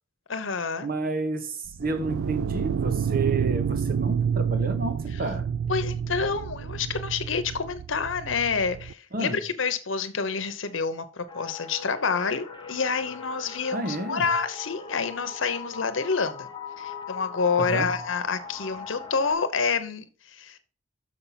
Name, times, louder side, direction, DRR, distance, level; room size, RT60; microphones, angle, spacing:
voice 1, 0.3-0.9 5.7-16.5 16.8-20.6, left 5 dB, 75° left, 0.9 m, -28 dB
voice 2, 0.8-5.5 9.1-9.4 13.7-14.3 17.6-17.9, right 2 dB, 45° right, 1.1 m, -30 dB
sound 1, 1.7-8.9, right 7 dB, 85° right, 0.3 m, -29 dB
sound 2, 11.3-19.3, left 6 dB, 25° left, 0.9 m, -40 dB
6.6 x 5.6 x 5.7 m
head